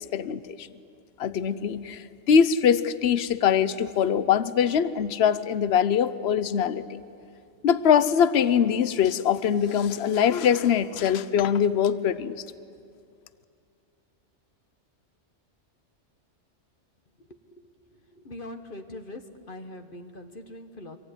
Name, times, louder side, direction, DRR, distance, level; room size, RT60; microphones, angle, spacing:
voice 1, 0.1-0.7 1.2-7.0 7.6-12.4, left 8 dB, 60° left, 15 dB, 1.0 m, -23 dB
voice 2, 18.2-19.2 19.5-21.0, left 1 dB, 45° left, 7 dB, 1.5 m, -41 dB
26.0 x 23.0 x 10.0 m, 2.4 s
omnidirectional pair, 1.2 m